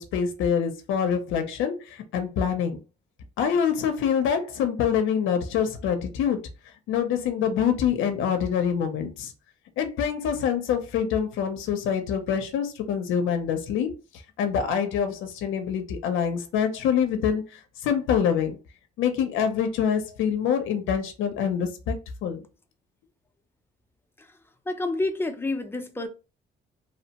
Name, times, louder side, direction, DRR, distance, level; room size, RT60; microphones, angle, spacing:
voice 1, 0.0-2.8 3.4-6.4 6.9-9.3 9.8-13.9 14.4-18.6 19.0-22.0 22.2-22.4, left 7 dB, 90° left, 0.5 m, -25 dB
voice 2, 24.7-26.1, left 2 dB, 10° left, 0.5 m, -28 dB
2.9 x 2.1 x 2.8 m
cardioid pair, 90°, 20 cm